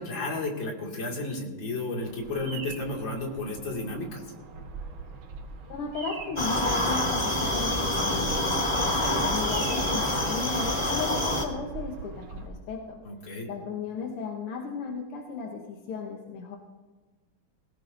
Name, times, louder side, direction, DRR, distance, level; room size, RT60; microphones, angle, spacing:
voice 1, 0.0-4.3 13.0-13.5, left 2 dB, 60° left, -1 dB, 3.0 m, -33 dB
Bird vocalization bird call bird song, 2.0-12.5, right 4 dB, 65° right, 2.1 m, -43 dB
voice 2, 5.7-8.4 8.7-13.0 13.5-16.6, left 5 dB, 80° left, 0 dB, 2.0 m, -35 dB
sound 1, 6.4-11.4, left 1 dB, 20° left, 0.9 m, -26 dB
21.5 x 17.5 x 2.6 m, 1.3 s
omnidirectional pair, 2.4 m